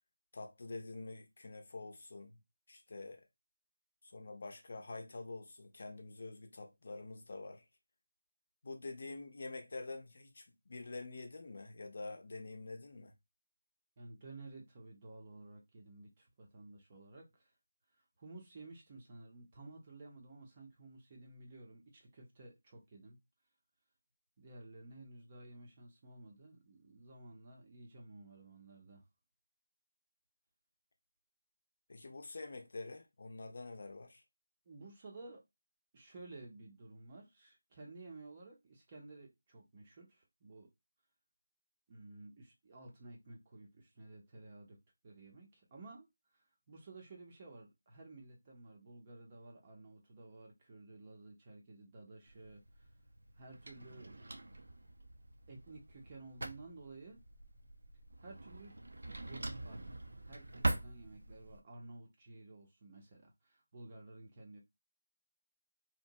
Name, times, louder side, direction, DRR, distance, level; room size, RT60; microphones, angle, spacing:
voice 1, 0.3-2.4 2.7-3.2 4.0-7.7 8.6-13.1 31.9-34.2, left 3 dB, 50° left, 0.6 m, -47 dB
voice 2, 14.0-17.5 18.0-23.2 24.4-29.1 34.7-35.4 35.9-40.7 41.9-44.8 45.0-46.1 46.3-52.9 53.3-54.4 55.5-57.2 58.2-58.8 59.2-59.9 60.2-64.6, right 2 dB, 25° right, 0.6 m, -54 dB
Drawer open or close, 52.2-61.6, right 2 dB, 70° right, 0.5 m, -43 dB
2.8 x 2.1 x 2.6 m
figure-of-eight pair, 165°, 0 cm